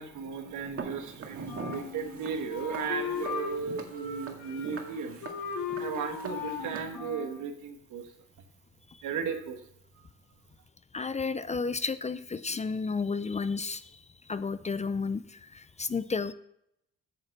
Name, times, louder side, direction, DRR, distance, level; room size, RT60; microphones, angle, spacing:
voice 1, 0.0-5.3 5.7-8.1 9.0-9.6 10.0-10.1, right 6 dB, 80° right, 6 dB, 1.6 m, -35 dB
Walk footsteps, 0.8-6.8, right 5 dB, 50° right, 1.9 m, -43 dB
Wind instrument woodwind instrument, 1.4-3.5 3.9-5.0 5.2-7.4, left 5 dB, 65° left, 3.9 m, -37 dB
voice 2, 10.9-14.0 14.3-16.3, left 4 dB, 25° left, 14 dB, 0.5 m, -32 dB
9.0 x 6.5 x 6.1 m, 0.75 s
cardioid pair, 90°, 30 cm